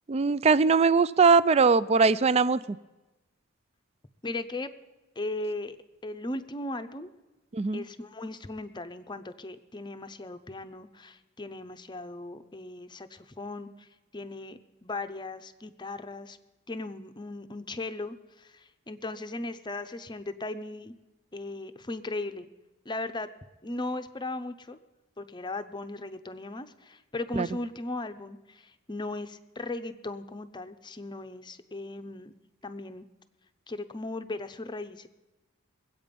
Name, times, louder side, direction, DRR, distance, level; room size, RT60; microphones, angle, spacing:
voice 1, 0.1-2.8 7.5-7.8 27.4-27.5, right 4 dB, 30° right, 18 dB, 0.3 m, -21 dB
voice 2, 4.2-4.7 5.2-5.8 6.0-7.1 7.7-13.9 14.1-16.4 16.7-20.9 21.3-22.5 22.9-23.3 23.6-24.8 25.2-32.3 32.6-33.1 33.7-35.1, left 2 dB, 20° left, 9 dB, 0.7 m, -37 dB
22.5 x 8.4 x 5.2 m, 1.1 s
head